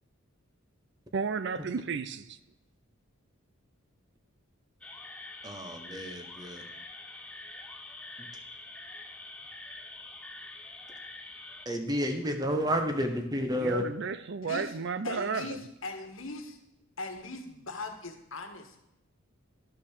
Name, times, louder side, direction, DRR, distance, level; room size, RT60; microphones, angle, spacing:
voice 1, 1.1-2.4 13.6-15.7, right 5 dB, 55° right, 0.5 m, -33 dB
sound 1, 4.8-11.7, left 2 dB, 5° left, 0.6 m, -45 dB
voice 2, 5.4-6.6 11.7-13.8, equal, 20° right, 1.1 m, -30 dB
voice 3, 14.4-14.7 15.0-16.6 17.0-18.9, left 3 dB, 65° left, 1.5 m, -40 dB
12.0 x 5.9 x 6.5 m
head